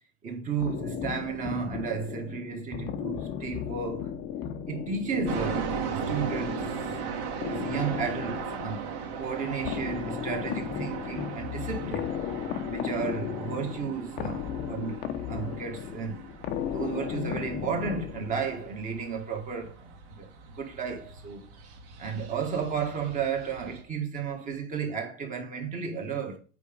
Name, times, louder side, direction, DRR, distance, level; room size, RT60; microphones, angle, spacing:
voice 1, 0.2-4.1 4.7-12.1 12.7-16.2 16.6-21.5 22.0-26.4, right 6 dB, 20° right, 1.7 m, -33 dB
sound 1, 0.6-18.7, left 9 dB, 30° left, 0.8 m, -36 dB
sound 2, 5.2-23.8, right 6 dB, 55° right, 2.3 m, -38 dB
8.3 x 5.0 x 5.2 m
supercardioid pair, 145°, 36 cm